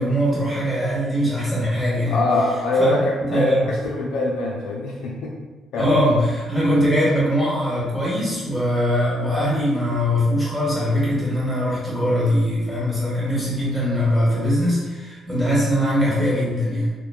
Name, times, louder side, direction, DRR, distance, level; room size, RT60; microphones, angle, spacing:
voice 1, 0.0-2.2 2.8-3.0 3.3-3.7 5.8-16.9, equal, 5° left, -8 dB, 1.4 m, -21 dB
voice 2, 2.1-3.5 3.8-5.3 5.7-5.9, left 2 dB, 85° left, -2 dB, 0.4 m, -23 dB
3.0 x 2.1 x 2.3 m, 1.2 s
cardioid pair, 90°, 0 cm